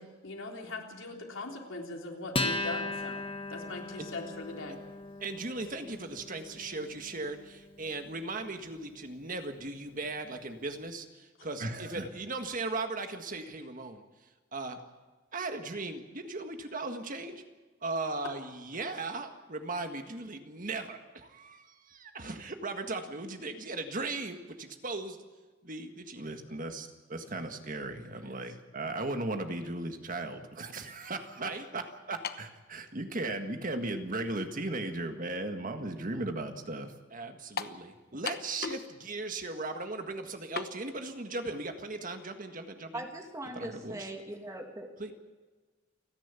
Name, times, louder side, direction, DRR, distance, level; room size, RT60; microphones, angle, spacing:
voice 1, 0.0-3.2 3.5-4.8, left 2 dB, 80° left, 1 dB, 3.6 m, -40 dB
Acoustic guitar, 2.3-9.2, left 2 dB, 30° left, 1.4 m, -38 dB
voice 2, 5.2-14.0 14.5-14.8 15.3-17.4 17.8-25.2 25.6-43.1 43.5-44.1 45.0-45.1, right 2 dB, 45° right, 6 dB, 1.7 m, -37 dB
sound 1, 32.2-32.5 33.4-33.5 37.6-37.8 38.3-38.9 39.2-39.3 40.6-40.7, left 5 dB, 50° left, 1.0 m, -36 dB
voice 3, 42.9-45.1, right 1 dB, 15° right, 3 dB, 2.6 m, -41 dB
29.0 x 11.0 x 8.3 m, 1.3 s
head